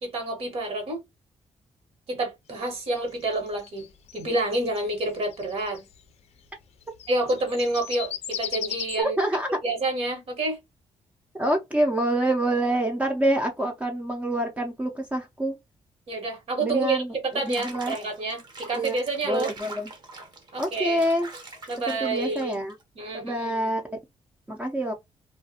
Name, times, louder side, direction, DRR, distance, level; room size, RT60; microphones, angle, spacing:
voice 1, 0.0-1.0 2.1-5.8 7.1-9.2 9.6-10.6 16.1-19.5 20.5-21.0 21.7-22.6 23.0-23.8, right 2 dB, 65° right, 1.3 m, -28 dB
sound 1, 2.7-5.9 6.8-9.0, left 10 dB, 70° left, 0.4 m, -36 dB
voice 2, 9.0-9.6 11.4-15.6 16.6-18.0 18.7-19.0 19.2-19.9 20.6-21.3 21.9-22.7 23.1-24.0 24.5-24.9, right 1 dB, 15° right, 0.5 m, -26 dB
Water / Bathtub (filling or washing), 17.3-22.8, right 2 dB, 40° right, 0.8 m, -44 dB
2.4 x 2.2 x 2.7 m
cardioid pair, 100°, 11 cm